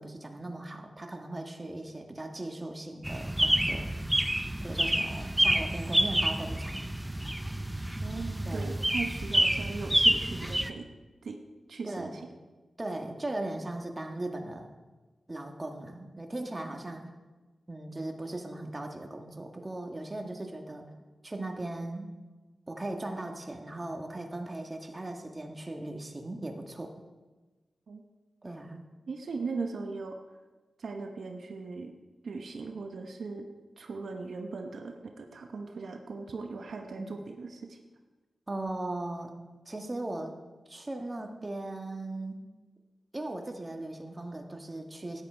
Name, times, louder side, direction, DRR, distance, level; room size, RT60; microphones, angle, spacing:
voice 1, 0.0-3.8 4.6-6.9 8.5-8.7 11.8-12.2 12.8-14.7 15.3-17.1 17.7-20.8 21.2-22.1 22.7-26.9 28.4-28.8 37.0-37.1 38.5-39.3 39.6-40.3 40.7-42.4 43.1-45.2, right 2 dB, 25° right, 3 dB, 1.5 m, -38 dB
sound 1, 3.0-10.7, right 1 dB, 10° right, 0.6 m, -28 dB
voice 2, 8.0-10.9 11.2-11.4 11.7-12.2 27.9-28.0 29.1-30.2 30.8-31.9 32.2-33.5 33.8-37.8, right 4 dB, 75° right, 4 dB, 0.9 m, -38 dB
13.5 x 9.9 x 4.5 m, 1.2 s
cardioid pair, 70°, 0 cm